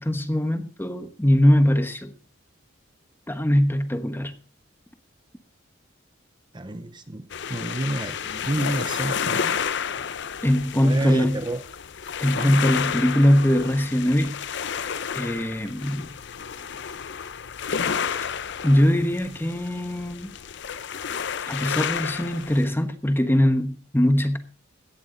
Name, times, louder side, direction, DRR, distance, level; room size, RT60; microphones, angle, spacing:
voice 1, 0.0-2.1 3.3-4.3 10.4-11.4 12.2-14.3 15.1-16.1 18.6-20.3 21.5-24.4, equal, 10° left, 9 dB, 1.1 m, -21 dB
voice 2, 6.5-9.5 10.7-11.6 12.3-12.5, right 1 dB, 25° right, 10 dB, 0.8 m, -29 dB
sound 1, 7.3-22.7, left 7 dB, 60° left, 0.7 m, -31 dB
17.5 x 12.0 x 3.9 m, 0.38 s
head